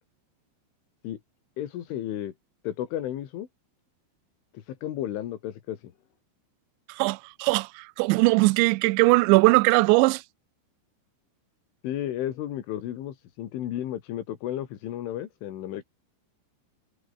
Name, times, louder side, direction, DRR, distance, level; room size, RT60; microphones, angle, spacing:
voice 1, 1.6-2.3 2.6-3.5 4.5-5.9 11.8-15.8, left 12 dB, 85° left, 4.6 m, -33 dB
voice 2, 6.9-10.2, right 24 dB, 80° right, 2.8 m, -20 dB
omnidirectional pair, 5.4 m